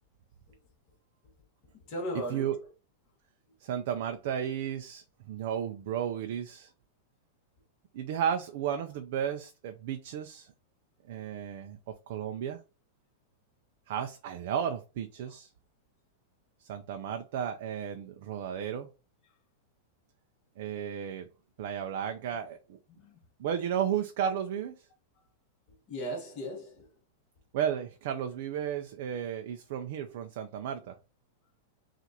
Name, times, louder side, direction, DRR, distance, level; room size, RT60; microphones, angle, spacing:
voice 1, 1.9-2.6 15.2-15.4 22.9-23.2 25.9-26.9, equal, 25° left, 1.4 m, -37 dB
voice 2, 3.6-6.7 7.9-10.5 11.1-11.8 12.1-12.6 13.9-15.5 16.6-18.9 20.6-21.3 21.6-22.8 23.4-24.8 27.5-30.9, right 9 dB, 45° right, 0.4 m, -33 dB
5.8 x 2.5 x 2.8 m
supercardioid pair, 180°, 0 cm